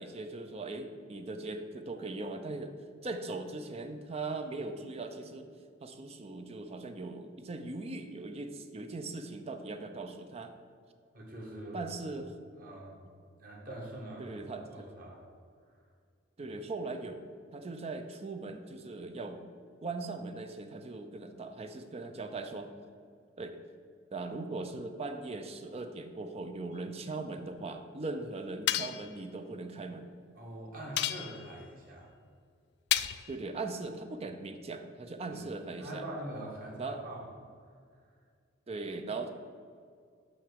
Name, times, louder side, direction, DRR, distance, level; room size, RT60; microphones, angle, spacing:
voice 1, 0.0-2.7 3.0-5.5 5.8-10.5 11.7-12.3 14.2-14.9 16.4-17.2 17.5-19.5 19.8-22.7 23.4-23.5 24.1-30.1 33.3-36.0 36.8-37.0 38.7-39.3, right 3 dB, 30° right, 7 dB, 0.5 m, -39 dB
voice 2, 11.1-11.8 12.1-12.2 12.5-13.0 13.4-15.2 30.4-32.1 35.3-35.5 35.8-37.3, right 1 dB, 50° right, -1 dB, 1.8 m, -44 dB
sound 1, 28.7-29.1 31.0-31.6 32.9-33.3, left 12 dB, 60° left, 0.3 m, -31 dB
6.3 x 5.8 x 6.4 m, 2.2 s
head